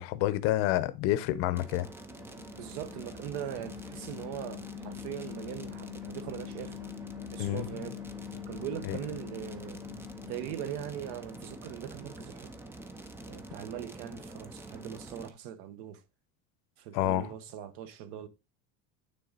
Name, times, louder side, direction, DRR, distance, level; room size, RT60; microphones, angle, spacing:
voice 1, 0.0-1.9 7.4-7.7 8.9-9.0 16.9-17.3, left 14 dB, 70° left, 0.8 m, -28 dB
sound 1, 1.5-15.3, right 2 dB, 10° right, 0.4 m, -46 dB
sound 2, 1.8-11.9, left 17 dB, 50° left, 0.5 m, -45 dB
voice 2, 2.6-6.8 7.3-8.0 8.5-9.8 10.3-12.5 13.3-16.0 16.8-18.3, right 10 dB, 65° right, 1.1 m, -40 dB
9.4 x 3.8 x 4.0 m
cardioid pair, 175°, 32 cm